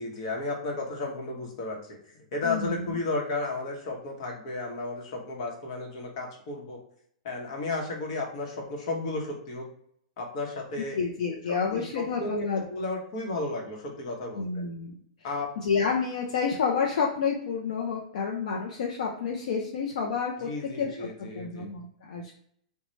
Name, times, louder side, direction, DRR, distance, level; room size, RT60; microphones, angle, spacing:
voice 1, 0.0-2.0 2.3-6.8 7.2-9.7 10.2-11.0 11.3-14.5 15.2-15.5 20.4-21.7, left 2 dB, 50° left, 0 dB, 0.9 m, -33 dB
voice 2, 2.4-3.0 10.9-12.6 14.4-14.9 15.6-20.5 20.8-22.3, left 5 dB, 65° left, -1 dB, 0.5 m, -29 dB
3.1 x 2.2 x 3.8 m, 0.67 s
supercardioid pair, 160°, 4 cm